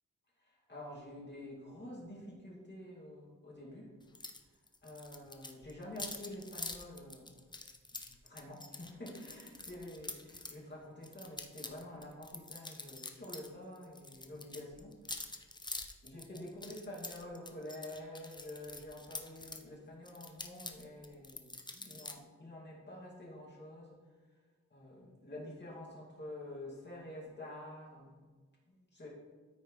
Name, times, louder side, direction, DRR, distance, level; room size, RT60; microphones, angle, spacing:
voice 1, 0.4-3.9 4.8-7.4 8.1-14.9 15.4-15.5 16.0-24.0 24.7-28.3 28.7-29.1, left 1 dB, 35° left, -5 dB, 2.3 m, -48 dB
sound 1, 4.1-4.4 4.7-10.6 11.0-13.5 13.7-19.6 20.0-22.1, left 2 dB, 15° left, 0.5 m, -46 dB
13.5 x 4.7 x 3.2 m, 1.4 s
wide cardioid pair, 120°, 32 cm